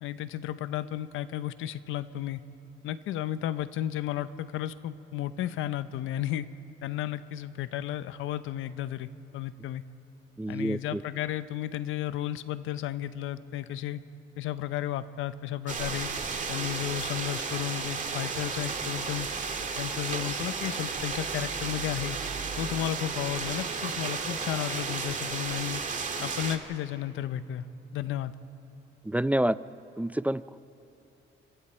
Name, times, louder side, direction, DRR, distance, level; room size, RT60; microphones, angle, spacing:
voice 1, 0.0-2.4 2.8-6.5 6.8-9.8 10.5-14.0 14.4-16.1 16.5-19.3 19.8-22.2 22.6-25.8 26.2-27.7 27.9-28.3, left 12 dB, 90° left, 13 dB, 0.8 m, -33 dB
voice 2, 10.4-11.0 29.1-29.6 30.0-30.6, right 1 dB, 5° right, 15 dB, 0.4 m, -28 dB
sound 1, 15.7-26.6, right 5 dB, 40° right, 2.1 m, -33 dB
29.0 x 25.5 x 4.4 m, 3.0 s
cardioid pair, 90°, 20 cm